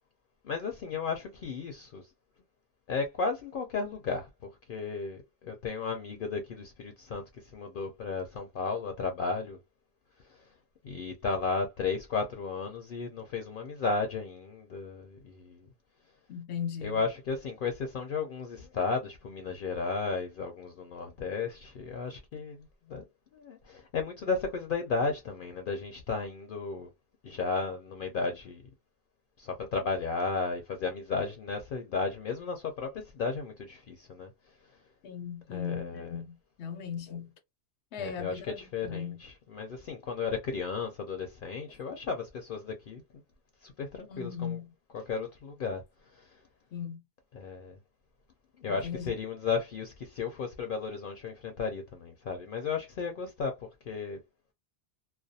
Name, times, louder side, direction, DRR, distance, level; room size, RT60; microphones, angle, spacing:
voice 1, 0.4-2.0 2.9-4.3 4.7-7.2 7.5-9.6 10.8-15.6 16.8-23.0 23.3-26.9 27.2-28.6 29.4-34.3 35.5-36.2 38.0-43.0 43.6-44.6 44.9-45.8 46.2-46.3 47.3-47.8 48.6-54.2, left 4 dB, 60° left, 0.7 m, -34 dB
voice 2, 16.3-17.0 35.0-37.3 37.9-39.2 44.1-44.7 46.7-47.0 48.7-49.1, left 7 dB, 85° left, 0.9 m, -38 dB
2.4 x 2.2 x 2.6 m
omnidirectional pair, 1.1 m